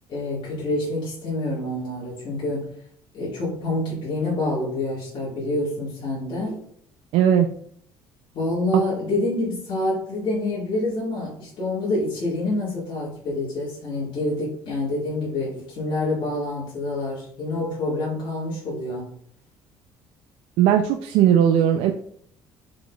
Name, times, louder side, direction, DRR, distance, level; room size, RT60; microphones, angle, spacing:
voice 1, 0.1-2.7 3.1-6.6 8.3-19.1, left 2 dB, 50° left, -7 dB, 1.8 m, -27 dB
voice 2, 7.1-7.5 20.6-21.9, right 9 dB, 75° right, 5 dB, 0.4 m, -18 dB
5.0 x 3.8 x 2.3 m, 0.63 s
cardioid pair, 120°, 10 cm